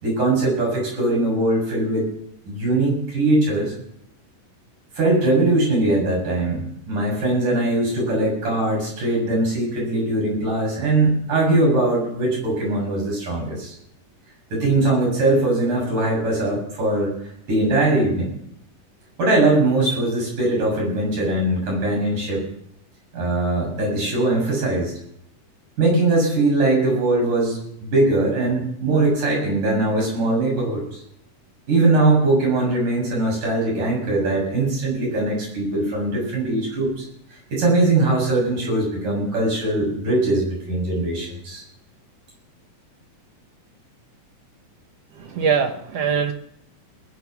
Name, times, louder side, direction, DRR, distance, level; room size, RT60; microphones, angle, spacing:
voice 1, 0.0-2.1 2.5-3.7 5.0-13.8 14.5-17.1 17.5-18.3 19.2-22.5 23.1-24.9 25.8-31.0 31.7-37.1 37.5-41.6, right 2 dB, 90° right, -2 dB, 8.7 m, -21 dB
voice 2, 45.2-46.3, right 6 dB, 65° right, 6 dB, 1.8 m, -22 dB
20.5 x 10.0 x 6.0 m, 0.74 s
omnidirectional pair, 3.6 m